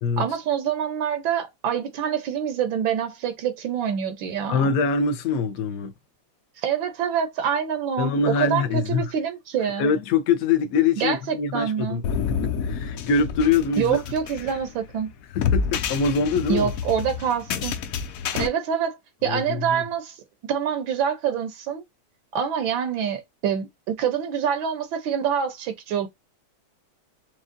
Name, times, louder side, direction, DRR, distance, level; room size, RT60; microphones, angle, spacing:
voice 1, 0.2-4.6 6.6-9.9 11.0-12.0 13.8-15.1 16.5-17.8 18.3-19.0 19.2-20.1 20.4-21.8 22.3-26.1, right 8 dB, 80° right, 1.6 m, -26 dB
voice 2, 4.5-5.9 8.0-9.1 9.8-14.0 15.3-16.7 19.2-19.9, left 5 dB, 60° left, 1.0 m, -24 dB
sound 1, 12.0-18.5, left 6 dB, 90° left, 0.7 m, -28 dB
6.2 x 2.3 x 2.6 m
omnidirectional pair, 2.1 m